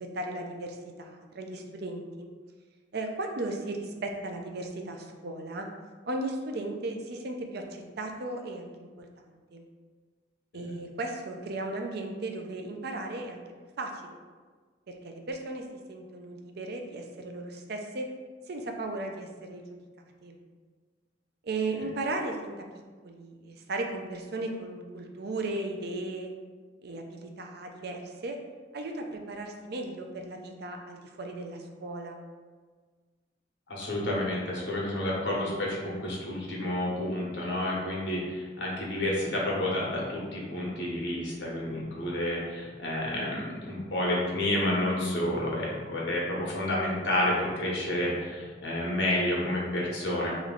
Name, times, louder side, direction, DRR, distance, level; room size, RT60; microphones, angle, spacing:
voice 1, 0.0-2.3 2.9-5.7 6.1-9.6 10.5-13.4 13.8-14.2 14.9-18.1 18.5-19.8 20.2-20.4 21.4-22.6 23.0-26.3 26.8-28.4 28.7-32.2, right 2 dB, 60° right, 3 dB, 0.5 m, -36 dB
voice 2, 33.7-50.3, left 1 dB, 80° left, -4 dB, 1.1 m, -30 dB
3.1 x 3.1 x 3.8 m, 1.4 s
head